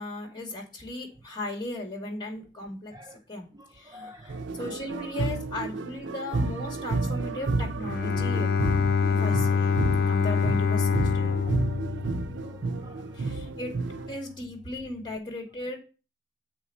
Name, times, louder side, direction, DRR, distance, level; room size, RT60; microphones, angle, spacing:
voice 1, 0.0-3.4 3.7-8.5 9.0-11.4 13.1-13.7 14.1-15.8, left 2 dB, 25° left, 2.4 m, -37 dB
voice 2, 3.5-4.5 4.9-5.2 11.0-11.8 12.3-13.5, equal, 20° right, 0.4 m, -51 dB
sound 1, 4.3-14.2, right 3 dB, 80° right, 0.6 m, -31 dB
Bowed string instrument, 7.8-12.7, left 5 dB, 55° left, 0.4 m, -25 dB
7.8 x 4.6 x 7.0 m
head